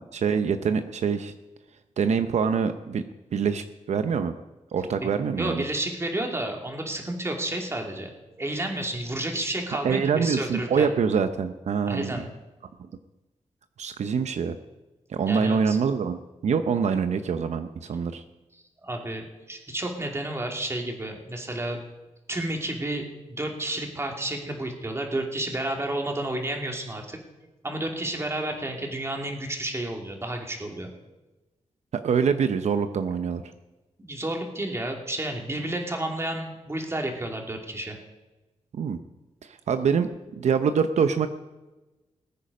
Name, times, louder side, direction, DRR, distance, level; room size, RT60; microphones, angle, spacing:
voice 1, 0.1-1.3 2.0-3.0 3.3-4.3 4.7-5.6 9.8-12.2 13.8-14.6 15.1-16.2 16.4-18.2 32.0-33.4 38.7-39.0 39.5-40.1 40.4-41.3, right 6 dB, 75° right, 9 dB, 0.7 m, -25 dB
voice 2, 5.4-8.1 8.4-10.9 11.9-12.3 15.3-15.8 18.8-21.8 22.3-27.2 27.6-30.9 34.0-38.0, right 1 dB, 25° right, 2 dB, 2.7 m, -31 dB
20.5 x 8.6 x 5.3 m, 1.1 s
cardioid pair, 85°, 12 cm